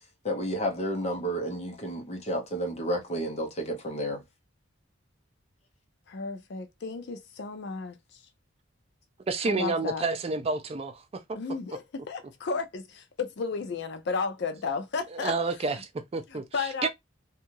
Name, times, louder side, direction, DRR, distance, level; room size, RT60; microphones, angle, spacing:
voice 1, 0.2-4.2, equal, 35° left, 0.8 m, -31 dB
voice 2, 6.1-8.2 9.5-10.1 11.3-15.3 16.3-16.9, left 4 dB, 55° left, 0.4 m, -33 dB
voice 3, 9.3-11.0 15.1-16.9, right 3 dB, 30° right, 0.4 m, -29 dB
2.7 x 2.3 x 2.8 m
head